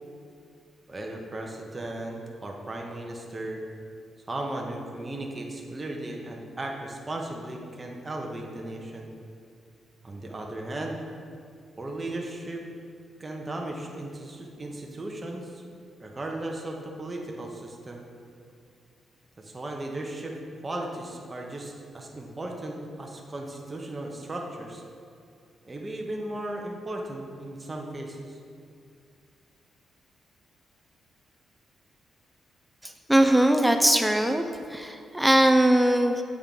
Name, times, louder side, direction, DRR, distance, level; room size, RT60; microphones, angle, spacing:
voice 1, 0.9-3.6 4.3-9.1 10.0-11.0 11.8-12.6 13.2-15.6 16.0-18.0 19.4-20.3 20.6-24.8 25.6-28.4, right 1 dB, 20° right, 0 dB, 0.7 m, -36 dB
voice 2, 32.8-34.4 34.7-36.2, right 1 dB, 5° right, 6 dB, 0.4 m, -21 dB
7.3 x 3.6 x 5.2 m, 2.4 s
cardioid pair, 120°, 0 cm